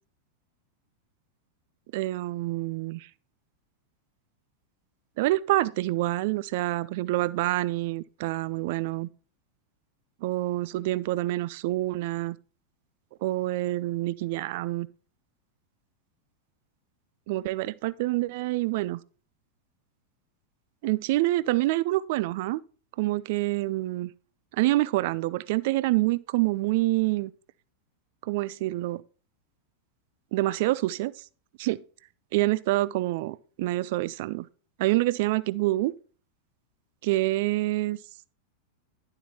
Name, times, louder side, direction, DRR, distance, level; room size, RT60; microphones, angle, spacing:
voice 1, 1.9-3.1 5.2-9.1 10.2-12.4 13.2-14.9 17.3-19.0 20.8-22.6 23.0-24.1 24.6-27.3 28.2-29.0 30.3-31.1 31.6-31.8 32.3-34.5 34.8-35.9 37.0-38.0, right 18 dB, 50° right, 0.3 m, -27 dB
11.0 x 7.2 x 2.8 m
figure-of-eight pair, 90°, 0 cm